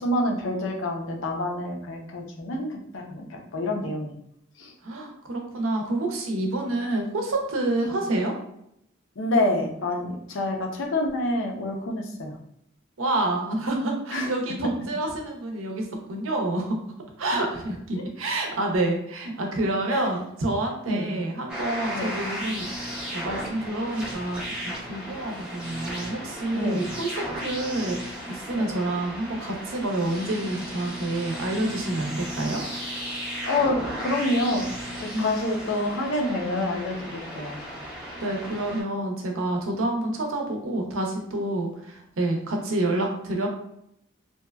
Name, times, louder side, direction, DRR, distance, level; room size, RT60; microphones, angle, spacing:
voice 1, 0.0-3.3 3.5-4.1 4.6-4.7 9.2-12.3 14.1-14.3 19.9-20.0 20.9-21.1 21.9-22.1 26.5-26.8 28.5-28.7 33.5-34.6 35.2-37.6, left 1 dB, 70° left, 1 dB, 0.5 m, -27 dB
voice 2, 4.8-8.3 13.0-16.8 17.2-24.4 24.9-32.6 35.1-35.3 37.8-43.5, right 2 dB, 85° right, 2 dB, 0.6 m, -28 dB
sound 1, 21.5-38.8, equal, 5° right, 0.5 m, -35 dB
2.8 x 2.2 x 2.2 m, 0.76 s
head